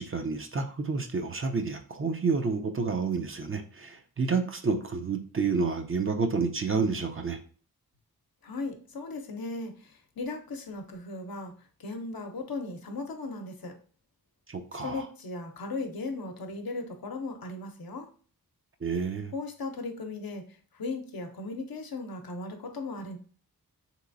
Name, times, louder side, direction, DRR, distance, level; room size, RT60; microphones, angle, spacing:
voice 1, 0.0-7.4 14.5-15.0 18.8-19.3, right 4 dB, 35° right, 5 dB, 0.5 m, -29 dB
voice 2, 8.4-11.5 11.8-13.7 14.8-18.1 19.3-23.2, left 3 dB, 65° left, 4 dB, 0.7 m, -37 dB
3.1 x 2.9 x 2.6 m, 0.42 s
cardioid pair, 45°, 38 cm